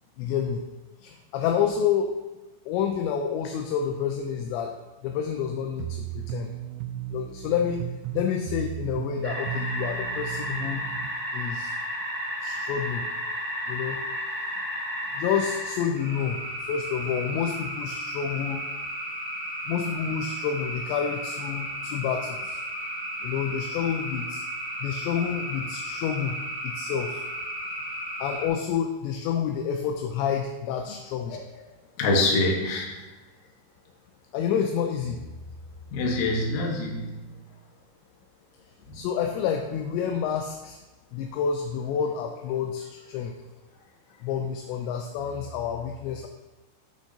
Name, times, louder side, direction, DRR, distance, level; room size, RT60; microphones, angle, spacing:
voice 1, 0.2-0.6 1.0-2.2 2.7-6.5 7.1-7.8 8.1-10.8 11.3-11.7 12.4-13.0 13.7-14.0 15.1-16.4 16.7-18.6 19.7-22.6 23.2-24.4 24.8-26.3 26.6-27.2 28.2-31.4 34.3-35.2 38.9-40.8 41.1-43.3 44.2-46.3, left 7 dB, 85° left, 4 dB, 2.6 m, -29 dB
sound 1, 5.8-11.1, right 13 dB, 85° right, 2.5 m, -35 dB
sound 2, 9.2-28.5, equal, 5° right, 1.5 m, -33 dB
voice 2, 31.3-31.6 32.0-33.1 35.9-37.5 38.9-39.0, left 2 dB, 65° left, -1 dB, 2.5 m, -26 dB
12.5 x 6.1 x 2.8 m, 1.1 s
omnidirectional pair, 5.5 m